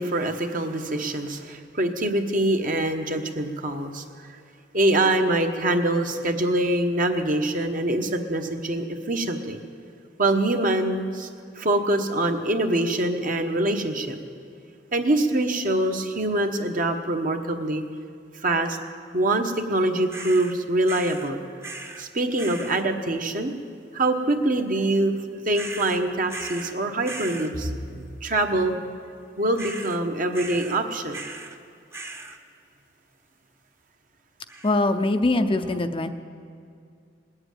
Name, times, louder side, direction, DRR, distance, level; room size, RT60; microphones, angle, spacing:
voice 1, 0.0-4.0 4.7-9.6 10.2-11.3 11.6-14.2 14.9-17.8 18.4-18.8 19.1-21.4 22.0-23.5 23.9-28.8 29.4-31.2, right 1 dB, 45° right, 4 dB, 1.2 m, -24 dB
sound 1, 20.1-20.5 20.9-21.3 21.6-22.1 22.4-22.8 25.5-26.8 27.0-27.5 29.6-30.0 30.3-30.8 31.1-31.6 31.9-32.4 34.5-34.9, right 3 dB, 15° right, 0.9 m, -38 dB
voice 2, 34.6-36.1, left 2 dB, 30° left, 8 dB, 0.6 m, -22 dB
20.0 x 8.0 x 9.1 m, 2.3 s
head